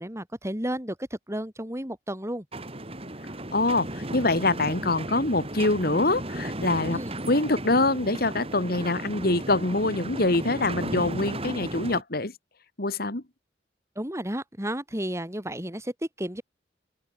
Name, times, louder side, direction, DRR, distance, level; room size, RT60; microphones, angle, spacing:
voice 1, 0.0-2.4 6.8-7.1 14.0-16.4, right 1 dB, 15° right, 7.9 m, -32 dB
sound 1, 2.5-12.0, right 1 dB, 35° right, 5.6 m, -35 dB
voice 2, 3.5-7.0 7.3-12.3 12.8-13.2, left 2 dB, 60° left, 2.6 m, -24 dB
open air
head